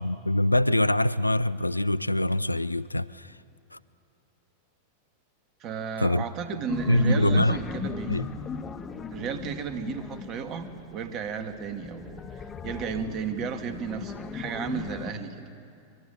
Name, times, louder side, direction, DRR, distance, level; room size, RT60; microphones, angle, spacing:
voice 1, 0.0-3.3 3.7-3.8 6.0-6.2 6.9-7.6 8.1-8.2, left 1 dB, 85° left, 0.5 m, -24 dB
voice 2, 5.6-8.3 9.1-15.5, right 6 dB, 35° right, 2.3 m, -34 dB
sound 1, 6.7-11.0 11.6-15.1, left 6 dB, 20° left, 1.4 m, -37 dB
24.5 x 22.0 x 9.0 m
figure-of-eight pair, 90°, 0 cm